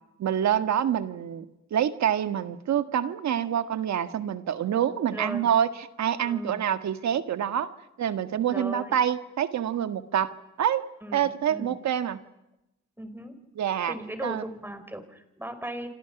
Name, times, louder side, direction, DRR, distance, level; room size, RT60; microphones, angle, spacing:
voice 1, 0.2-1.5 1.7-5.7 6.0-7.7 8.0-10.3 10.6-10.8 11.1-12.2 13.6-13.9 14.2-14.4, right 9 dB, 65° right, 10 dB, 1.8 m, -26 dB
voice 2, 5.1-5.5 6.2-6.6 8.5-9.0 11.0-11.8 13.0-13.4 13.9-15.9, right 1 dB, 5° right, 9 dB, 4.6 m, -37 dB
28.0 x 27.0 x 6.1 m, 0.90 s
cardioid pair, 90°, 30 cm